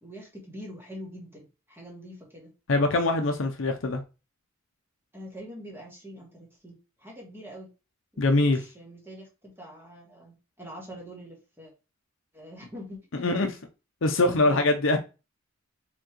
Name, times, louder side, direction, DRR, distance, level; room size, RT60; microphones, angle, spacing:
voice 1, 0.0-2.5 5.1-7.7 8.1-8.3 8.5-11.7 12.3-13.5 14.1-14.6, equal, 10° right, 1.7 m, -44 dB
voice 2, 2.7-4.0 8.2-8.6 13.2-13.5 14.0-15.0, left 2 dB, 70° left, 0.7 m, -23 dB
4.5 x 3.7 x 3.0 m
head